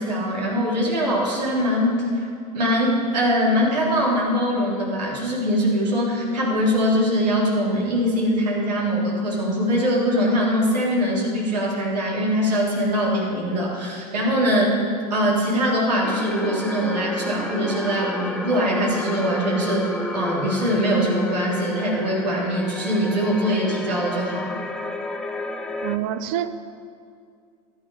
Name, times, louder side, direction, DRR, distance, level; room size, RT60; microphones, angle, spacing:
voice 1, 0.0-2.3 2.5-14.8 15.1-24.5, equal, 90° right, -4 dB, 3.5 m, -22 dB
sound 1, 16.0-26.0, left 1 dB, 5° left, 0.9 m, -31 dB
voice 2, 25.8-26.5, right 12 dB, 60° right, 12 dB, 0.8 m, -26 dB
14.5 x 11.0 x 5.4 m, 2.3 s
hypercardioid pair, 90°, 20 cm